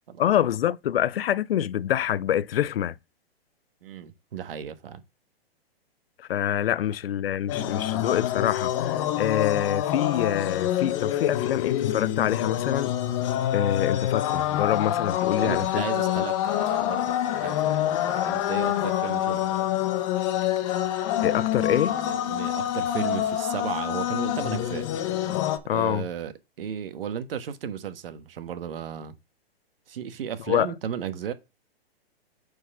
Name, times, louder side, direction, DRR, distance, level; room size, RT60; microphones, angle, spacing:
voice 1, 0.2-2.9 6.3-12.9 13.5-15.8 16.2-16.3 21.2-22.0 25.7-26.0 30.5-30.7, left 11 dB, 65° left, 0.5 m, -26 dB
voice 2, 3.8-5.0 7.6-7.7 15.3-19.7 21.6-24.8 25.7-26.3 26.6-29.1 29.9-31.3, right 8 dB, 65° right, 1.4 m, -35 dB
sound 1, 7.5-25.6, left 12 dB, 30° left, 0.9 m, -26 dB
6.3 x 4.7 x 5.5 m
hypercardioid pair, 145°, 31 cm